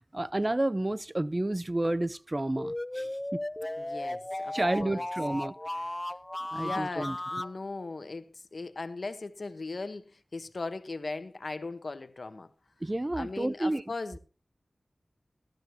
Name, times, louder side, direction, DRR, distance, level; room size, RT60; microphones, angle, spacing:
voice 1, 0.1-3.4 4.5-5.5 6.5-7.2 12.8-13.8, right 1 dB, 30° right, 0.6 m, -30 dB
sound 1, 2.6-7.5, left 1 dB, 25° left, 0.6 m, -36 dB
voice 2, 3.8-5.1 6.5-12.5 13.1-14.2, left 3 dB, 65° left, 1.1 m, -38 dB
15.5 x 13.0 x 2.9 m
cardioid pair, 45°, 0 cm